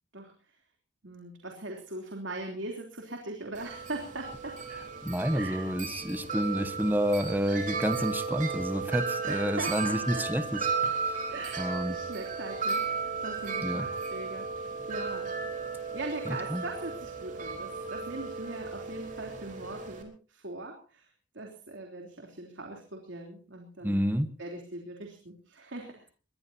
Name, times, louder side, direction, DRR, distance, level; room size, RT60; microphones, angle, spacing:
voice 1, 0.1-0.6 1.0-4.6 5.3-5.7 9.2-10.3 11.3-15.4 15.9-24.0 24.4-26.1, right 2 dB, 65° right, 2 dB, 3.4 m, -41 dB
Wind chime, 3.6-20.0, right 4 dB, 40° right, 4.0 m, -35 dB
voice 2, 5.0-11.0 11.6-11.9 13.6-13.8 16.5-16.6 23.8-24.3, equal, 10° right, 10 dB, 1.2 m, -29 dB
22.0 x 21.0 x 2.8 m, 0.38 s
head